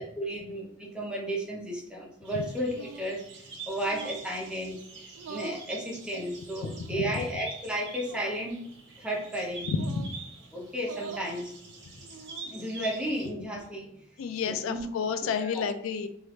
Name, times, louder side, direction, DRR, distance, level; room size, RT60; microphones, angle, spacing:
voice 1, 0.2-3.2 3.7-4.8 5.3-8.7 9.0-9.7 10.5-11.6 12.5-13.9 14.4-14.8 15.2-15.6, equal, 5° right, -2 dB, 0.6 m, -33 dB
sound 1, 2.2-13.3, right 4 dB, 60° right, 0.7 m, -45 dB
sound 2, 2.7-3.2 3.8-4.3 5.1-5.7 6.6-7.2 8.0-8.4 9.7-10.2 10.8-11.3 12.0-12.6, right 6 dB, 90° right, 0.3 m, -45 dB
voice 2, 6.6-7.0 9.7-10.1 14.2-16.1, left 5 dB, 90° left, 10 dB, 0.3 m, -30 dB
3.2 x 2.4 x 3.1 m, 0.74 s
head